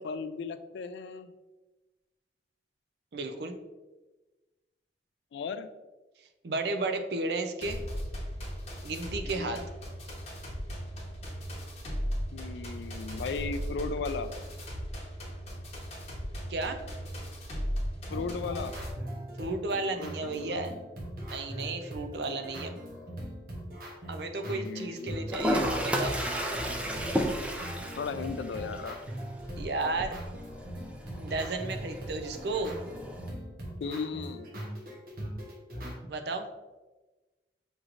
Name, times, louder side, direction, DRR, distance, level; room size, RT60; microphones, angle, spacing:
voice 1, 0.0-1.3 5.3-5.7 9.2-9.6 12.3-14.3 18.1-18.7 19.9-20.6 24.5-25.3 28.0-29.0 33.8-34.5, left 4 dB, 80° left, 11 dB, 0.3 m, -36 dB
voice 2, 3.1-3.6 6.4-7.8 8.8-9.6 16.5-16.8 19.4-20.7 21.3-22.7 24.1-26.2 29.6-30.2 31.2-32.8 36.1-36.5, right 3 dB, 70° right, 7 dB, 0.5 m, -33 dB
sound 1, 7.6-18.9, equal, 35° left, 1.0 m, -37 dB
sound 2, 18.1-35.9, equal, 55° right, 1.0 m, -41 dB
Toilet flush, 25.3-33.3, equal, 5° right, 0.3 m, -34 dB
6.1 x 3.1 x 2.5 m, 1.2 s
head